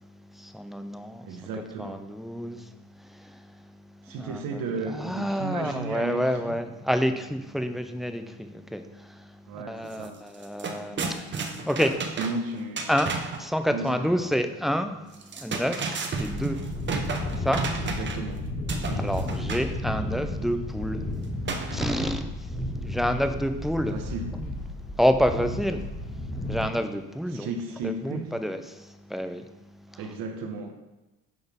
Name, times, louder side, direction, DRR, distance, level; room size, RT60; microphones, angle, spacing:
voice 1, 0.3-1.4 1.8-2.7 3.1-3.4 4.2-4.6 4.9-9.3 9.5-12.1 12.9-15.0 15.3-16.6 17.4-17.7 19.0-21.0 21.7-22.5 22.8-23.9 24.4-24.5 25.0-25.8 26.5-27.5 27.8-29.5 29.9-30.0, equal, ahead, 7 dB, 0.3 m, -28 dB
voice 2, 1.2-2.0 4.0-6.6 9.5-10.2 12.2-12.9 13.7-14.3 17.8-18.4 18.8-19.1 23.9-24.4 27.3-28.3 30.0-30.7, right 3 dB, 70° right, 5 dB, 1.2 m, -34 dB
sound 1, 9.9-10.1 10.3-13.5 15.1-18.3 18.7-19.7 21.5-22.4, right 4 dB, 30° right, 0.8 m, -32 dB
sound 2, 16.2-26.6, left 1 dB, 20° left, 2.0 m, -33 dB
10.5 x 4.0 x 3.5 m, 1.0 s
cardioid pair, 110°, 35 cm